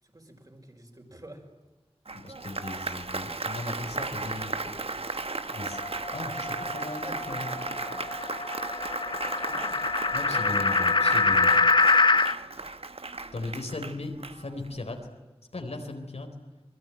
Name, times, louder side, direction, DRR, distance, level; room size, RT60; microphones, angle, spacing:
voice 1, 0.0-1.5 7.0-8.0 9.2-9.8 10.4-10.7, right 1 dB, 35° right, 3 dB, 5.9 m, -49 dB
voice 2, 2.1-4.5 5.5-5.8 6.1-7.6 10.1-11.6 13.3-15.1 15.5-16.3, left 2 dB, 90° left, 4 dB, 4.1 m, -37 dB
Applause, 2.1-14.8, right 3 dB, 70° right, 1.3 m, -36 dB
sound 1, 5.6-12.3, left 3 dB, 50° left, 1.0 m, -25 dB
26.5 x 21.5 x 9.2 m, 1.2 s
wide cardioid pair, 50°, 10 cm